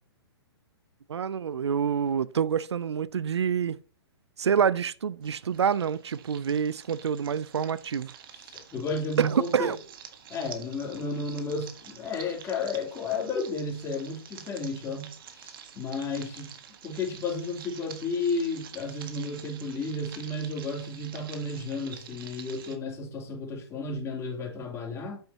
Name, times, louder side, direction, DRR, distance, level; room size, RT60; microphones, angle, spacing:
voice 1, 1.1-3.8 4.4-8.1 9.2-9.8, right 7 dB, 85° right, 0.5 m, -27 dB
sound 1, 5.2-22.8, right 8 dB, 55° right, 1.6 m, -48 dB
voice 2, 8.3-9.8 10.3-16.5 16.8-25.2, left 3 dB, 20° left, 3.1 m, -33 dB
9.0 x 8.1 x 2.9 m
hypercardioid pair, 130°, 14 cm